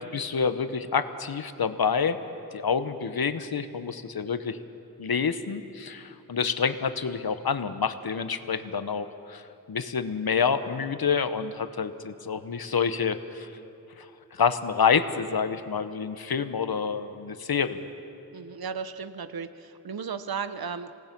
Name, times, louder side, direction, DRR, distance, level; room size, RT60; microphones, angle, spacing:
voice 1, 0.0-2.2 2.5-4.6 5.0-9.4 9.7-13.5 14.0-17.9, left 6 dB, 75° left, 11 dB, 1.0 m, -28 dB
voice 2, 18.3-20.9, right 6 dB, 75° right, 12 dB, 0.8 m, -35 dB
26.5 x 18.5 x 6.0 m, 2.9 s
wide cardioid pair, 55°, 37 cm